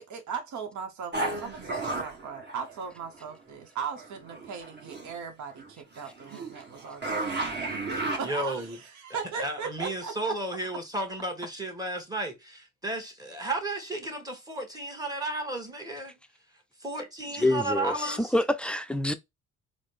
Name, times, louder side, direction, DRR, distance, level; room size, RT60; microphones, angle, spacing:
voice 1, 0.0-7.2 8.2-10.1, right 6 dB, 70° right, 0.8 m, -38 dB
sound 1, 1.1-3.3 4.0-5.1 5.6-8.7, right 2 dB, 35° right, 1.2 m, -34 dB
voice 2, 7.9-8.8 9.3-16.1 16.8-18.3, right 2 dB, 10° right, 1.2 m, -33 dB
voice 3, 17.4-19.1, left 1 dB, 5° left, 0.4 m, -26 dB
4.0 x 2.0 x 3.2 m
cardioid pair, 90°, 30 cm